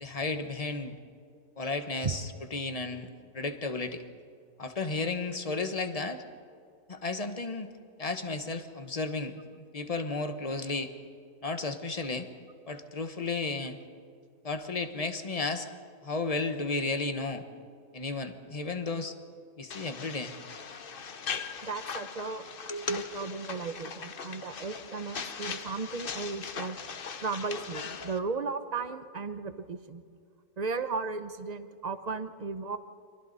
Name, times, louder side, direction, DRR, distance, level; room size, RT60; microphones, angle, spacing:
voice 1, 0.0-1.0 1.6-3.1 3.3-4.0 4.6-6.2 6.9-7.7 8.0-10.9 11.4-12.3 12.7-13.8 14.4-15.7 16.0-17.4 17.9-19.1 19.6-20.3 22.7-23.0, left 3 dB, 25° left, 8 dB, 1.2 m, -33 dB
sound 1, 19.7-28.2, left 6 dB, 45° left, 0.9 m, -40 dB
voice 2, 21.6-22.4 22.9-26.8 27.2-30.0 30.6-32.8, right 4 dB, 35° right, 10 dB, 0.7 m, -35 dB
30.0 x 24.5 x 4.1 m, 2.4 s
omnidirectional pair, 1.6 m